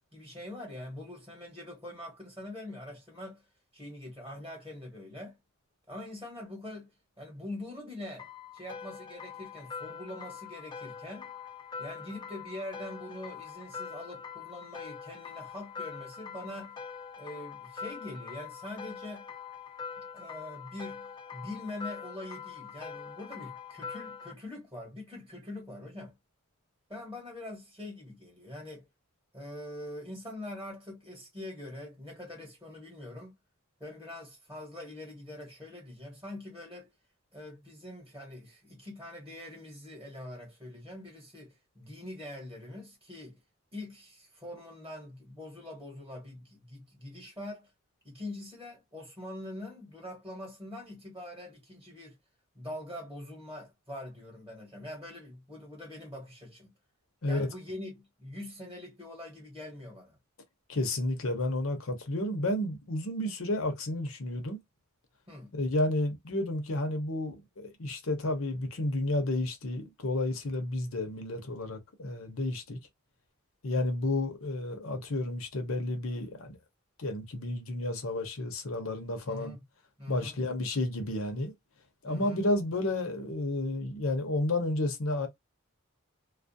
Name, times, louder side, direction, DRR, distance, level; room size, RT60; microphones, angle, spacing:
voice 1, 0.1-3.4 3.7-5.4 5.9-8.3 8.5-11.3 11.8-16.8 17.2-19.3 20.0-26.1 26.9-28.9 29.3-33.3 33.8-36.9 37.3-43.4 43.7-47.7 48.0-52.2 52.5-56.7 57.2-60.2 65.3-65.5 79.2-79.6 80.0-80.4 82.0-82.4, left 1 dB, 15° right, 1.1 m, -43 dB
sound 1, 8.2-24.3, left 6 dB, 20° left, 0.3 m, -43 dB
voice 2, 60.7-64.6 65.5-72.8 73.6-76.6 77.0-79.6 80.1-81.5 82.0-85.3, left 1 dB, 70° left, 0.8 m, -31 dB
2.4 x 2.0 x 2.5 m
head